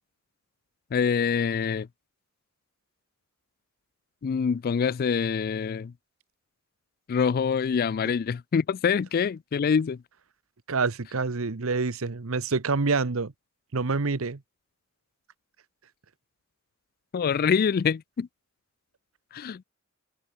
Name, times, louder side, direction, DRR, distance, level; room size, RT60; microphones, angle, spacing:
voice 1, 0.9-1.9 4.2-5.9 7.1-10.0 17.1-18.3 19.3-19.6, left 6 dB, 45° left, 0.3 m, -25 dB
voice 2, 10.7-13.3 13.7-14.4, right 4 dB, 80° right, 1.0 m, -27 dB
head